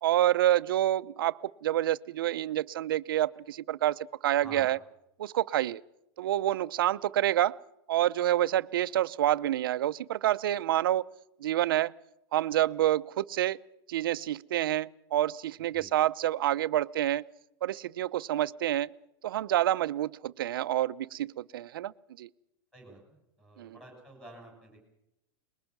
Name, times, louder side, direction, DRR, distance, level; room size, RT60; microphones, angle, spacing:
voice 1, 0.0-4.8 5.2-5.8 6.2-7.6 7.9-11.1 11.4-11.9 12.3-13.6 13.9-17.2 17.6-18.9 19.2-21.9 22.2-22.3 23.6-23.8, right 13 dB, 60° right, 14 dB, 0.7 m, -28 dB
voice 2, 23.4-24.8, right 2 dB, 5° left, 1 dB, 6.4 m, -49 dB
24.0 x 21.0 x 6.0 m, 0.88 s
supercardioid pair, 180°, 13 cm